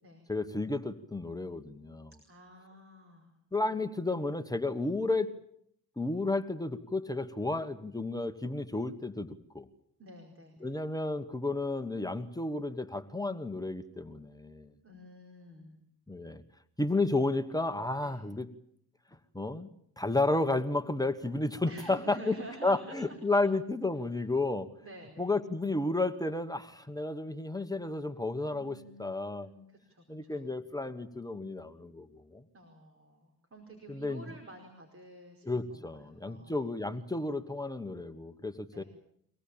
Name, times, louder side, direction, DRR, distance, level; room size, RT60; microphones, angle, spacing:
voice 1, 0.3-2.1 3.5-5.3 6.0-9.7 10.6-14.7 16.1-16.4 16.8-18.5 19.3-22.4 22.6-24.7 25.2-29.5 30.1-32.4 33.9-34.2 35.4-38.8, left 2 dB, 10° left, 8 dB, 1.3 m, -32 dB
voice 2, 2.2-3.3 3.6-3.7 10.0-10.8 14.8-15.8 18.0-18.2 21.7-23.4 24.8-25.3 28.5-30.5 32.5-36.7 38.7-38.8, right 1 dB, 35° right, 3 dB, 4.9 m, -50 dB
24.5 x 18.5 x 8.7 m, 0.69 s
cardioid pair, 95°, 40 cm